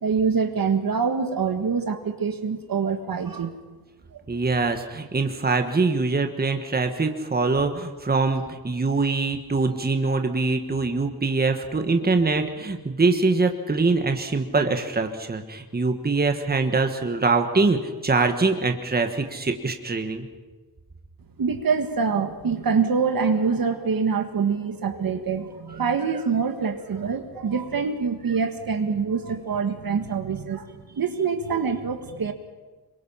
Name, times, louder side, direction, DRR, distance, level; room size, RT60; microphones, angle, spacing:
voice 1, 0.0-3.5 4.1-4.2 21.4-32.3, right 5 dB, 60° right, 7 dB, 1.7 m, -25 dB
voice 2, 4.3-20.3, right 3 dB, 25° right, 6 dB, 1.5 m, -23 dB
26.0 x 23.0 x 5.7 m, 1.3 s
wide cardioid pair, 135°, 40 cm